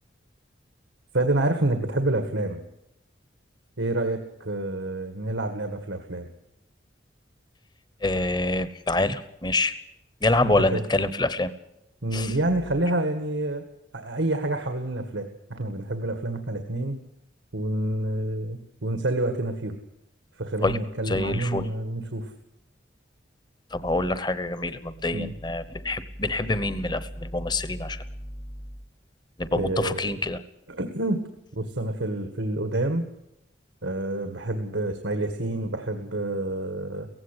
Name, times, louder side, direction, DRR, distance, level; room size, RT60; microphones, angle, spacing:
voice 1, 1.1-2.6 3.8-6.3 10.4-10.8 12.0-13.6 13.9-17.0 17.5-19.8 20.4-22.3 25.1-25.3 29.6-30.2 30.7-31.2 31.5-33.1 33.8-37.1, right 1 dB, 90° right, 6 dB, 1.9 m, -28 dB
voice 2, 8.0-9.7 10.2-11.5 12.1-12.3 20.6-20.8 21.1-21.7 23.7-28.0 29.4-30.4, left 2 dB, 25° left, 13 dB, 1.0 m, -26 dB
17.5 x 16.0 x 9.9 m, 0.82 s
head